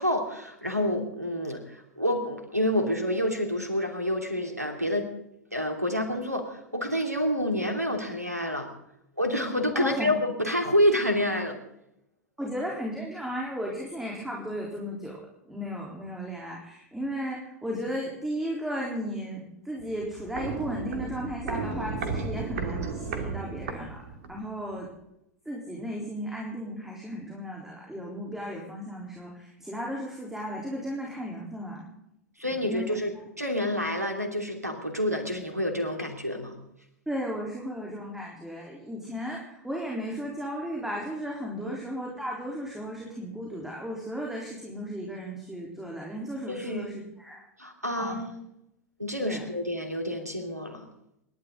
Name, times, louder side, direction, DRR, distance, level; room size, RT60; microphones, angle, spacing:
voice 1, 0.0-5.1 5.5-8.7 9.2-11.6 32.4-36.6 41.6-41.7 46.5-46.9 47.6-48.4 49.0-50.9, equal, 90° right, 5 dB, 2.9 m, -28 dB
voice 2, 9.7-10.1 12.4-15.2 15.5-24.0 24.3-24.9 25.5-31.9 32.5-33.0 37.1-47.4 48.0-48.2 49.2-49.5, equal, 5° right, -2 dB, 3.8 m, -35 dB
Walk footsteps, 19.8-24.5 24.8-24.9, right 4 dB, 60° right, 2.6 m, -34 dB
28.0 x 12.0 x 3.9 m, 0.82 s
figure-of-eight pair, 90°, 8 cm